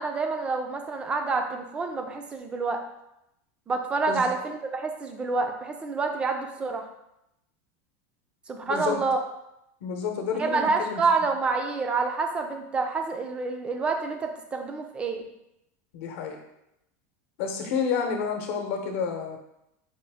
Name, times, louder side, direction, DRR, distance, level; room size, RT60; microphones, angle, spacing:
voice 1, 0.0-2.8 3.7-6.9 8.5-9.2 10.3-15.2, right 4 dB, 15° right, 5 dB, 0.3 m, -28 dB
voice 2, 8.7-9.0 9.8-11.0 15.9-16.4 17.4-19.4, left 6 dB, 60° left, 3 dB, 0.8 m, -29 dB
5.0 x 2.5 x 3.4 m, 0.83 s
supercardioid pair, 170°, 8 cm